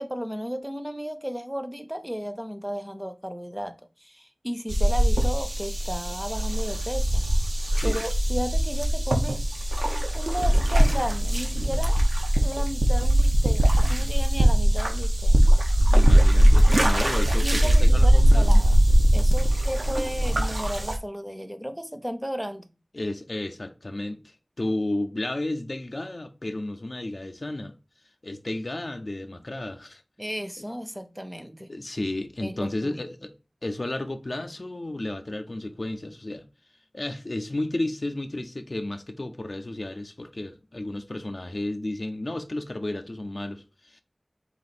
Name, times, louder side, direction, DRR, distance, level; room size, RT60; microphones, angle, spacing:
voice 1, 0.0-7.2 7.8-9.4 10.1-12.0 12.4-15.4 17.2-18.8 19.1-22.7 30.2-31.7 32.4-33.0, equal, 10° right, 0.6 m, -34 dB
sound 1, 4.7-21.0, equal, 80° right, 0.8 m, -20 dB
voice 2, 7.7-8.0 15.8-18.6 22.9-27.7 28.2-30.0 30.6-30.7 31.7-33.3 33.6-36.4 36.9-44.0, left 1 dB, 65° left, 0.5 m, -33 dB
4.2 x 2.6 x 4.0 m
wide cardioid pair, 45°, 0 cm